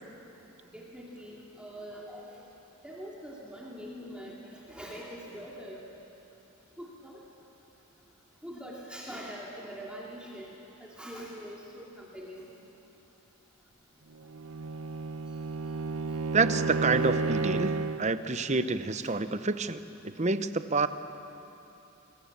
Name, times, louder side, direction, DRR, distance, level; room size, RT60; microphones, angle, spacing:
voice 1, 0.6-2.4 2.8-5.9 6.8-7.2 8.4-10.5 10.8-12.5, equal, 5° right, -4 dB, 2.6 m, -43 dB
Bowed string instrument, 14.2-18.1, right 4 dB, 85° right, 0.8 m, -31 dB
voice 2, 16.3-20.9, right 3 dB, 30° right, 11 dB, 0.8 m, -28 dB
28.5 x 22.0 x 7.3 m, 3.0 s
head